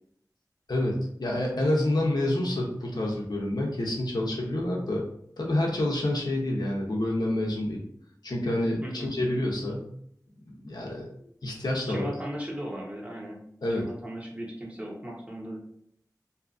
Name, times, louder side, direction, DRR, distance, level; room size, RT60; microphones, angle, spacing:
voice 1, 0.7-5.0 5.4-7.8 8.2-9.9 10.5-12.1 13.6-13.8, left 1 dB, 80° left, -1 dB, 0.6 m, -28 dB
voice 2, 11.9-13.4 13.7-15.6, equal, 20° right, -3 dB, 0.8 m, -37 dB
2.7 x 2.4 x 2.4 m, 0.71 s
wide cardioid pair, 50°, 7 cm